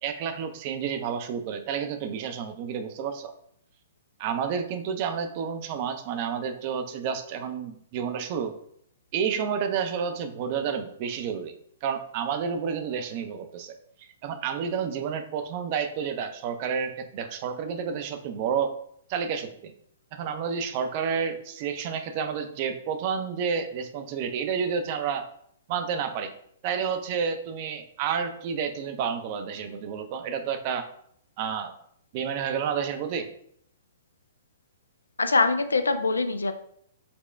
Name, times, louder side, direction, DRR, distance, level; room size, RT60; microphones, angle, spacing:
voice 1, 0.0-3.3 4.2-8.5 9.1-11.5 11.8-13.7 14.0-18.7 19.1-19.7 20.1-25.3 25.7-26.3 26.6-30.9 31.4-31.7 32.1-33.3, right 7 dB, 40° right, 8 dB, 0.5 m, -30 dB
voice 2, 35.2-36.5, left 3 dB, 80° left, 9 dB, 0.4 m, -23 dB
4.1 x 2.2 x 3.3 m, 0.67 s
figure-of-eight pair, 115°, 0 cm